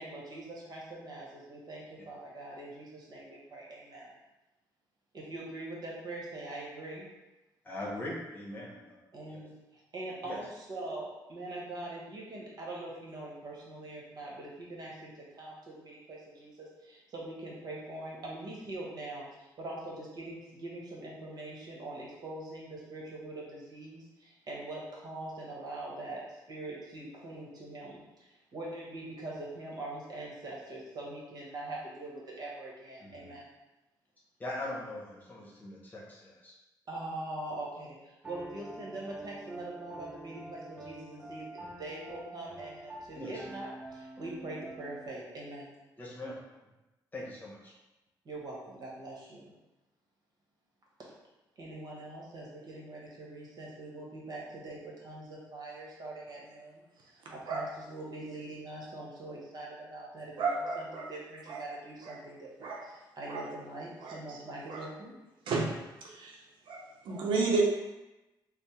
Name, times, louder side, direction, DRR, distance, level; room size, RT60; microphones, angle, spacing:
voice 1, 0.0-4.1 5.1-7.1 9.1-9.5 9.9-33.5 36.9-41.5 41.8-45.7 48.2-49.5 51.0-51.1 51.6-65.1, right 2 dB, 55° right, -4 dB, 1.2 m, -43 dB
voice 2, 7.6-8.8 10.2-10.4 33.0-33.3 34.4-36.6 43.1-43.5 46.0-46.4 47.1-47.7, left 1 dB, 20° left, -5 dB, 1.0 m, -41 dB
Piano, 38.2-45.1, right 1 dB, 15° right, 0.7 m, -47 dB
voice 3, 60.4-61.1 61.5-61.6 62.0-62.2 62.6-62.8 63.3-63.4 64.0-64.4 64.7-64.9 65.5-65.7 66.0-67.6, right 4 dB, 90° right, -1 dB, 0.7 m, -32 dB
3.4 x 2.1 x 4.3 m, 1.0 s
cardioid pair, 120°, 8 cm